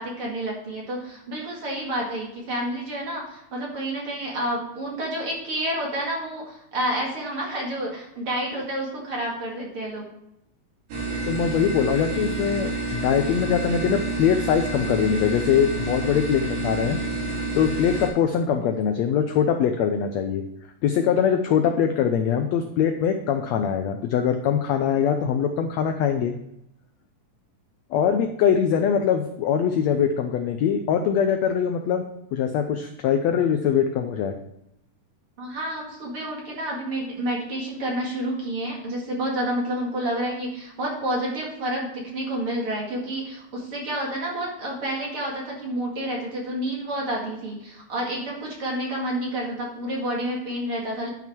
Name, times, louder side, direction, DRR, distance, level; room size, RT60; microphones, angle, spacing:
voice 1, 0.0-10.1 35.4-51.1, right 1 dB, 45° right, -2 dB, 2.7 m, -29 dB
sound 1, 10.9-18.1, right 2 dB, 80° right, 4.0 m, -29 dB
voice 2, 11.3-17.0 17.5-20.4 20.8-26.3 27.9-32.0 32.3-34.3, left 8 dB, 80° left, 6 dB, 1.5 m, -22 dB
11.0 x 5.9 x 4.5 m, 0.81 s
omnidirectional pair, 3.8 m